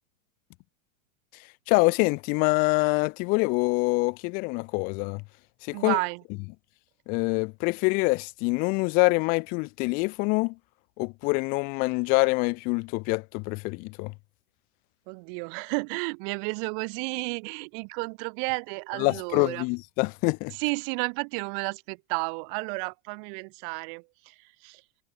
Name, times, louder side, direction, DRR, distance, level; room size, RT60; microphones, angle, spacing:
voice 1, 1.7-5.2 5.6-6.0 7.1-10.6 11.0-14.1 19.0-20.6, left 28 dB, 25° left, 0.4 m, -25 dB
voice 2, 5.7-6.2 15.1-19.6 20.5-24.3 24.6-24.8, right 38 dB, 45° right, 1.5 m, -32 dB
supercardioid pair, 155°, 37 cm